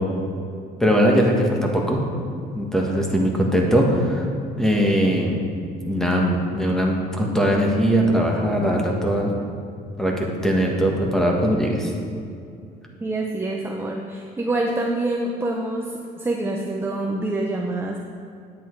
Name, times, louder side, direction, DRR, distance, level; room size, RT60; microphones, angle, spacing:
voice 1, 0.8-2.0 2.5-4.3 4.5-5.4 5.8-9.3 10.0-11.9, equal, 5° left, 0 dB, 1.6 m, -20 dB
voice 2, 13.0-18.0, right 2 dB, 15° right, 0 dB, 0.8 m, -26 dB
9.1 x 8.5 x 4.7 m, 2.5 s
cardioid pair, 110°, 17 cm